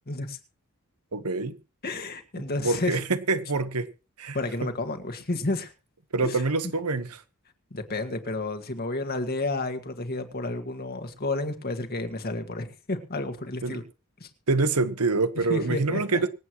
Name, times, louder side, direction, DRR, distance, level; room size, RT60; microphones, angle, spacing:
voice 1, 0.1-0.4 1.8-3.0 4.3-5.7 6.2-6.4 7.7-13.8 14.2-14.3 15.5-16.2, left 2 dB, 45° left, 1.9 m, -31 dB
voice 2, 1.1-1.5 2.6-3.9 4.2-4.7 6.1-7.2 13.6-13.8 14.5-16.3, right 3 dB, 80° right, 1.3 m, -26 dB
25.0 x 8.6 x 3.1 m
head